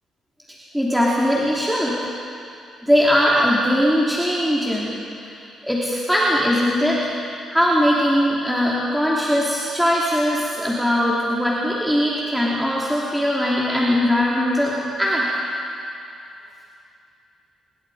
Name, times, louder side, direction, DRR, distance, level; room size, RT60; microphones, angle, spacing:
voice 1, 0.7-1.9 2.8-4.9 5.2-5.4 5.6-7.1 7.5-15.2, equal, ahead, -6 dB, 3.2 m, -20 dB
25.5 x 21.5 x 5.0 m, 2.5 s
cardioid pair, 90°, 0 cm